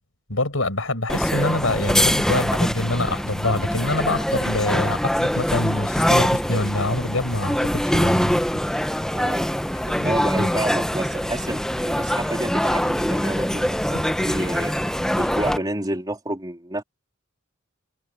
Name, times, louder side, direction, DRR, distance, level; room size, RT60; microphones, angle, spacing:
voice 1, 0.3-8.4 9.9-10.5, left 2 dB, 80° left, 6.4 m, -25 dB
sound 1, 1.1-15.6, equal, 5° left, 1.0 m, -23 dB
voice 2, 9.1-9.5 10.0-14.7 15.1-16.8, right 1 dB, 20° right, 3.5 m, -29 dB
head